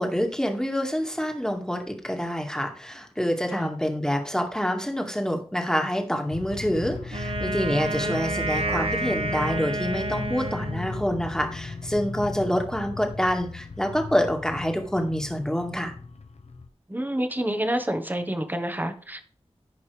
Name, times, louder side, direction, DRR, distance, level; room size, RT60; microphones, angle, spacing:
voice 1, 0.0-15.9, equal, 5° left, 3 dB, 2.0 m, -27 dB
sound 1, 6.3-16.7, left 4 dB, 80° left, 0.8 m, -36 dB
Wind instrument woodwind instrument, 7.1-11.3, right 3 dB, 60° right, 1.1 m, -30 dB
voice 2, 16.9-19.2, right 1 dB, 15° right, 8 dB, 1.3 m, -28 dB
14.0 x 5.3 x 3.4 m, 0.43 s
wide cardioid pair, 45°, 11 cm